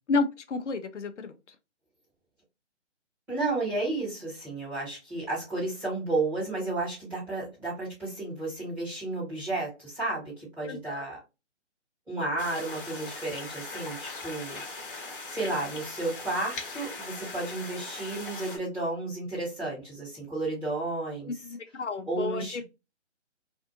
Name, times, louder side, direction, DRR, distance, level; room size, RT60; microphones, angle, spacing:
voice 1, 0.1-1.3 10.6-11.1 21.7-22.6, left 4 dB, 80° left, 0.6 m, -30 dB
voice 2, 3.3-11.2 12.1-14.6 15.3-21.4 22.1-22.6, right 2 dB, 5° right, 1.3 m, -32 dB
sound 1, 12.4-18.6, left 3 dB, 45° left, 1.0 m, -40 dB
2.6 x 2.5 x 2.5 m
figure-of-eight pair, 150°, 36 cm